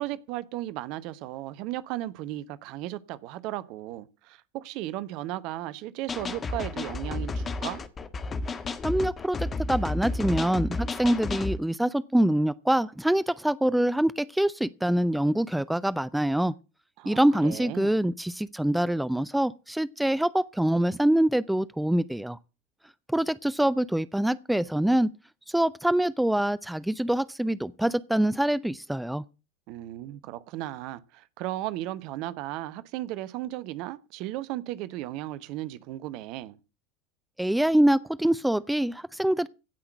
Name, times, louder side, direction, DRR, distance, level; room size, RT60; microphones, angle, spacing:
voice 1, 0.0-7.8 17.0-17.9 29.7-36.6, right 15 dB, 55° right, 0.9 m, -35 dB
sound 1, 6.1-11.6, left 3 dB, 25° left, 1.5 m, -32 dB
voice 2, 8.8-16.5 17.1-22.4 23.1-25.1 25.5-29.2 37.4-39.5, right 1 dB, 5° right, 0.6 m, -25 dB
16.5 x 5.9 x 7.6 m
figure-of-eight pair, 75°, 0 cm